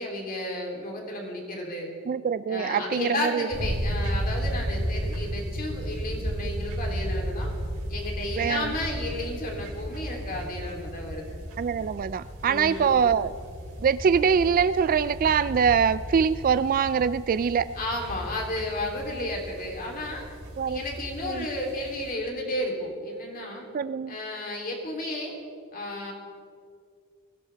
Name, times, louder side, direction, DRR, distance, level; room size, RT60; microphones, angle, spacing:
voice 1, 0.0-1.9 2.5-7.5 7.9-11.4 12.4-12.9 17.7-20.3 20.6-23.7 24.1-25.4 25.7-26.1, left 1 dB, 40° left, 0 dB, 3.3 m, -32 dB
voice 2, 2.1-3.5 8.4-8.7 11.6-13.3 13.8-17.7 20.6-20.8 21.2-21.5 23.7-24.2, right 6 dB, 40° right, 15 dB, 0.3 m, -24 dB
sound 1, 3.5-22.1, equal, 75° right, 4.0 m, -34 dB
23.5 x 16.0 x 3.5 m, 2.2 s
head